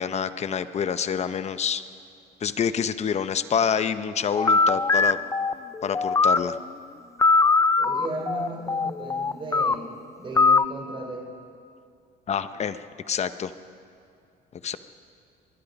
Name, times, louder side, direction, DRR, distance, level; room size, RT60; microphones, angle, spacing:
voice 1, 0.0-1.8 2.4-5.2 5.8-6.6 12.3-12.8 13.1-13.5 14.6-14.8, left 7 dB, 40° left, 12 dB, 0.8 m, -27 dB
sound 1, 4.4-6.6 7.2-9.7 10.4-10.7, left 4 dB, 20° left, 0.5 m, -21 dB
voice 2, 7.8-9.9 10.2-11.2, right 2 dB, 30° right, 2 dB, 3.4 m, -35 dB
24.5 x 20.0 x 5.3 m, 2.4 s
cardioid pair, 110°, 17 cm